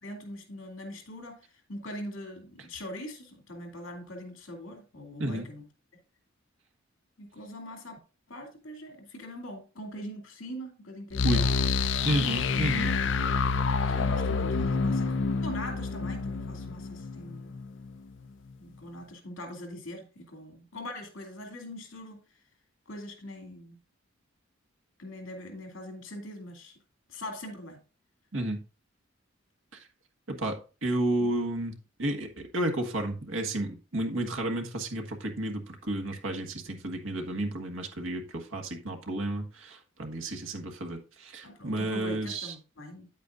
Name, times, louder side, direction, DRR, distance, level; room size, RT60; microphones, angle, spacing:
voice 1, 0.0-5.6 7.2-8.0 8.3-11.7 13.9-17.6 18.6-22.4 22.9-23.8 25.0-26.8 27.1-27.8 41.4-43.1, left 1 dB, 80° left, 2.5 m, -42 dB
sound 1, 11.1-17.9, left 4 dB, 65° left, 0.5 m, -28 dB
voice 2, 12.0-12.9 13.8-14.0 28.3-28.6 30.3-42.5, right 1 dB, 85° right, 1.5 m, -32 dB
9.4 x 8.3 x 2.5 m
head